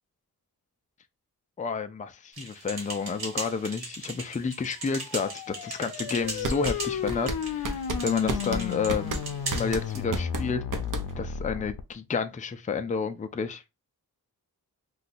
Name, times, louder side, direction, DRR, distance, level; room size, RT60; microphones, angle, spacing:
voice 1, 1.6-9.2 9.5-10.6 11.2-13.6, left 5 dB, 20° left, 0.3 m, -30 dB
sound 1, 2.3-10.0, right 3 dB, 85° right, 1.3 m, -39 dB
sound 2, 4.9-11.8, left 8 dB, 85° left, 0.5 m, -34 dB
sound 3, 6.2-11.4, right 2 dB, 55° right, 0.7 m, -32 dB
2.7 x 2.3 x 4.0 m
wide cardioid pair, 95°, 37 cm